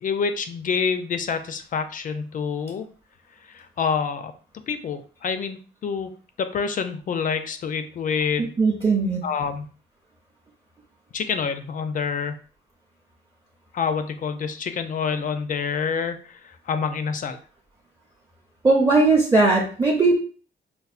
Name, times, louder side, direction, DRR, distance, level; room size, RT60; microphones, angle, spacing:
voice 1, 0.0-2.9 3.5-4.3 4.7-6.1 6.4-8.5 9.2-9.7 11.1-12.4 13.7-17.4, left 6 dB, 45° left, 8 dB, 0.4 m, -27 dB
voice 2, 8.4-9.2 18.6-20.2, right 3 dB, 15° right, -2 dB, 0.5 m, -19 dB
5.3 x 2.1 x 2.4 m, 0.41 s
wide cardioid pair, 160°, 19 cm